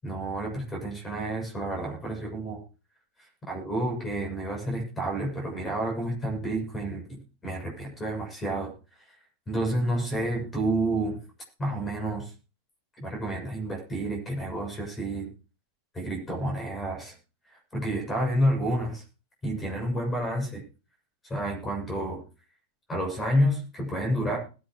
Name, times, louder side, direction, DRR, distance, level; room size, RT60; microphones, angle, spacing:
voice 1, 0.0-2.6 3.2-8.7 9.1-9.2 9.5-11.2 11.6-12.3 13.0-15.3 15.9-17.1 17.5-19.0 19.4-20.6 21.3-22.2 22.9-24.4, right 1 dB, 15° left, 1 dB, 7.4 m, -29 dB
21.0 x 8.7 x 3.2 m, 0.33 s
figure-of-eight pair, 90°, 0 cm